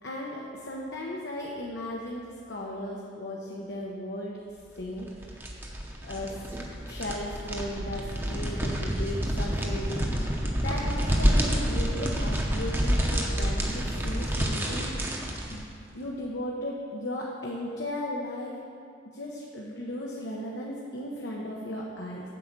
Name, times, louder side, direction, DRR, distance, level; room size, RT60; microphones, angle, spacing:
voice 1, 0.0-4.4 4.8-5.4 6.0-6.5 6.8-10.2 10.6-15.1 15.5-15.6 15.9-18.6 19.1-22.2, left 1 dB, 80° left, -3 dB, 0.9 m, -36 dB
sound 1, 5.0-15.7, equal, 10° right, 0.8 m, -28 dB
7.8 x 5.2 x 7.3 m, 2.3 s
head